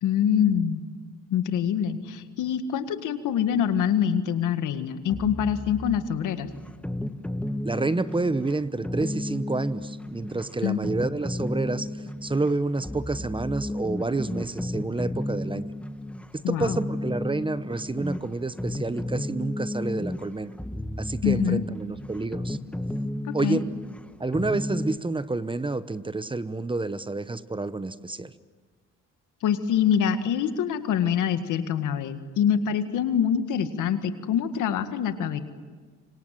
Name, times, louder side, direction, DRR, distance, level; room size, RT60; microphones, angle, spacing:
voice 1, 0.0-0.8 1.3-6.5 10.6-10.8 16.4-16.8 21.2-21.6 23.2-23.6 29.4-35.4, left 8 dB, 85° left, 9 dB, 1.9 m, -25 dB
sound 1, 5.1-25.0, left 1 dB, 5° left, 1.3 m, -33 dB
voice 2, 7.6-15.7 16.3-20.5 21.0-22.6 23.3-23.6 24.2-28.3, right 3 dB, 15° right, 14 dB, 0.9 m, -29 dB
27.0 x 25.5 x 7.7 m, 1.5 s
cardioid pair, 90°, 30 cm